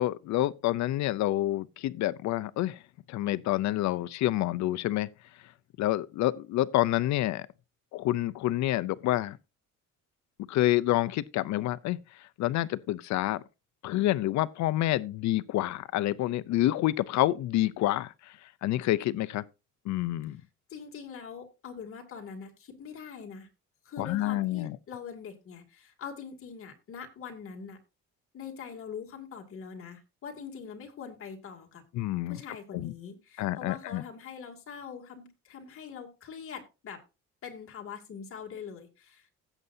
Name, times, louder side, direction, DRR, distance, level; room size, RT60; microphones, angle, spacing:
voice 1, 0.0-2.8 3.1-5.1 5.8-7.5 7.9-9.4 10.5-13.4 13.8-19.4 19.9-20.4 24.0-24.8 31.9-32.4 32.7-32.9 33.4-34.0, left 15 dB, 70° left, 0.6 m, -28 dB
voice 2, 20.7-23.5 23.8-27.8 28.3-31.8 32.3-37.0 37.4-39.3, left 6 dB, 50° left, 2.5 m, -43 dB
16.5 x 7.9 x 2.7 m
cardioid pair, 145°, 29 cm